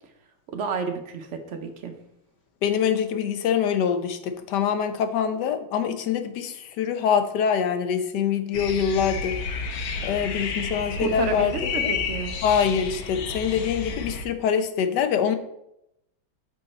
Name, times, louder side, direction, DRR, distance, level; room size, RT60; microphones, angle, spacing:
voice 1, 0.5-1.9 10.9-12.3, right 5 dB, 75° right, 5 dB, 0.6 m, -30 dB
voice 2, 2.6-9.4 10.0-11.5 11.8-11.9 12.4-15.4, left 7 dB, 65° left, 8 dB, 1.2 m, -24 dB
sound 1, 8.5-14.2, left 4 dB, 85° left, 1.5 m, -31 dB
6.4 x 5.3 x 4.1 m, 0.81 s
omnidirectional pair, 2.1 m